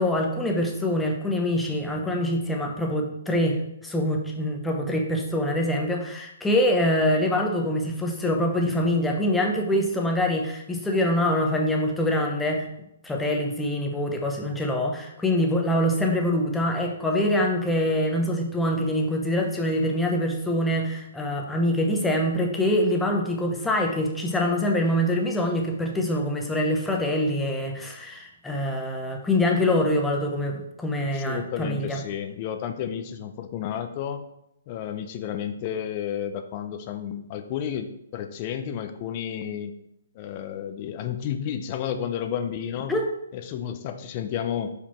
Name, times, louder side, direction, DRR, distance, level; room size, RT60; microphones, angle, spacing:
voice 1, 0.0-12.7 13.0-32.0 42.9-43.1, left 1 dB, 5° left, 1 dB, 0.9 m, -25 dB
voice 2, 31.1-34.2 34.7-39.7 40.1-42.9 43.3-44.7, left 9 dB, 35° left, 8 dB, 0.6 m, -31 dB
5.3 x 4.9 x 4.4 m, 0.81 s
hypercardioid pair, 150°, 0 cm